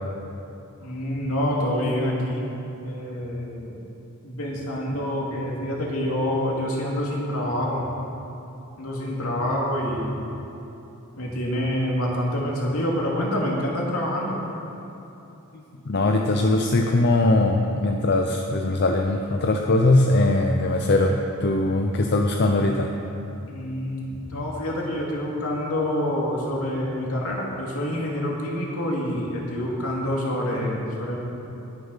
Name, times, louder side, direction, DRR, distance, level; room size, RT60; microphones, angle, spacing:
voice 1, 0.8-2.5 2.8-3.7 4.2-7.8 8.8-10.1 11.2-14.4 23.5-31.2, left 1 dB, 70° left, -3 dB, 2.5 m, -27 dB
voice 2, 15.9-22.9, left 2 dB, 50° left, 3 dB, 0.7 m, -21 dB
19.5 x 7.0 x 5.7 m, 3.0 s
head